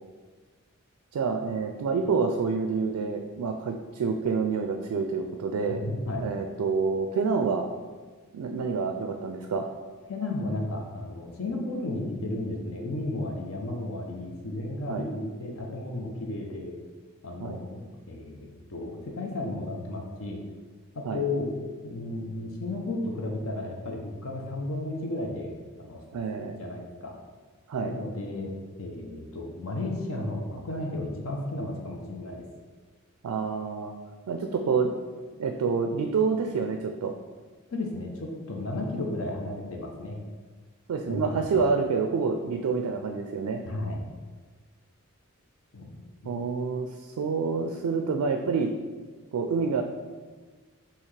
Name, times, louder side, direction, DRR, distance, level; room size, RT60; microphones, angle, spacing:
voice 1, 1.1-5.8 6.2-7.7 8.3-9.7 14.9-15.1 17.4-17.6 21.1-21.2 26.1-26.6 27.7-28.0 33.2-33.9 34.3-34.9 35.4-37.1 40.9-43.6 46.3-48.7 49.3-49.8, right 5 dB, 85° right, 4 dB, 0.4 m, -28 dB
voice 2, 5.7-6.2 10.1-16.8 17.2-20.4 20.9-21.6 21.8-26.0 26.6-27.1 27.8-32.5 37.7-40.2 41.1-41.6 43.6-44.0 45.7-45.9 46.2-46.3, left 2 dB, 65° left, 1 dB, 0.6 m, -33 dB
5.6 x 2.8 x 3.2 m, 1.4 s
head